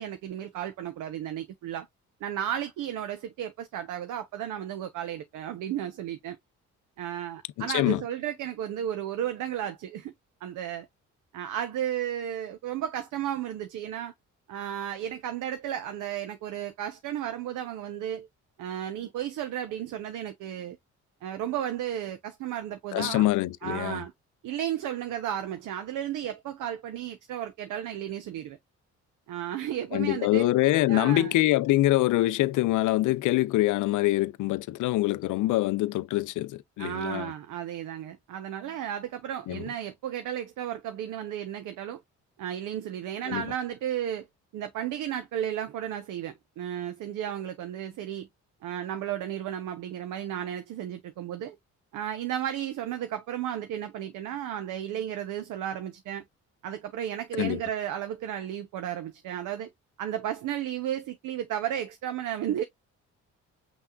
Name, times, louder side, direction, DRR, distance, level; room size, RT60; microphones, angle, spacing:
voice 1, 0.0-1.9 2.2-6.4 7.0-10.1 10.4-10.9 11.3-14.1 14.5-18.3 18.6-20.8 21.2-23.3 23.6-24.1 24.4-28.6 29.3-30.5 30.9-31.4 36.8-42.0 42.4-44.3 44.5-48.3 48.6-51.6 51.9-56.2 56.6-59.7 60.0-62.6, right 10 dB, 90° right, 1.0 m, -33 dB
voice 2, 7.6-8.0 22.9-24.0 29.9-37.3 39.5-39.6 43.3-43.4 57.4-57.6, left 17 dB, 80° left, 0.5 m, -25 dB
5.9 x 3.5 x 2.5 m
cardioid pair, 90°, 30 cm